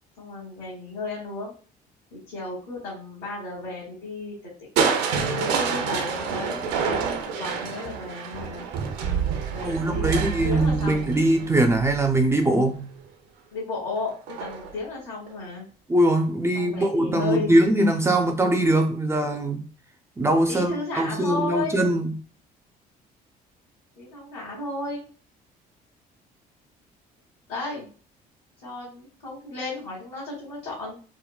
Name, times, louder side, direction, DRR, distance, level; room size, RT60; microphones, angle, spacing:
voice 1, 0.2-1.5 2.1-4.3 4.8-4.9 5.3-8.6 9.5-11.1 13.5-14.1 14.4-15.7 16.5-17.6 20.5-21.8 24.0-25.0 27.5-27.9 28.6-31.0, left 3 dB, 70° left, 1.5 m, -33 dB
Crushing, 4.8-12.7 14.3-14.8 15.3-15.4, right 6 dB, 85° right, 0.5 m, -28 dB
voice 2, 9.6-12.9 15.9-19.6 20.2-22.1, right 1 dB, 15° right, 0.4 m, -22 dB
3.6 x 2.1 x 2.3 m
cardioid pair, 110°, 17 cm